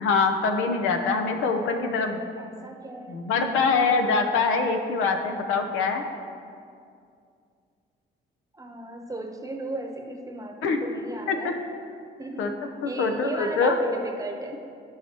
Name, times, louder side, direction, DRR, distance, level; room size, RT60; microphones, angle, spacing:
voice 1, 0.0-2.2 3.1-6.0 10.6-10.8 11.3-11.4 12.4-12.5 12.8-13.8, left 4 dB, 90° left, 5 dB, 0.8 m, -24 dB
voice 2, 2.4-3.2 8.5-11.6 12.2-12.5 12.8-14.6, right 2 dB, 15° right, 4 dB, 0.9 m, -36 dB
14.0 x 4.8 x 2.9 m, 2.3 s
cardioid pair, 90°, 20 cm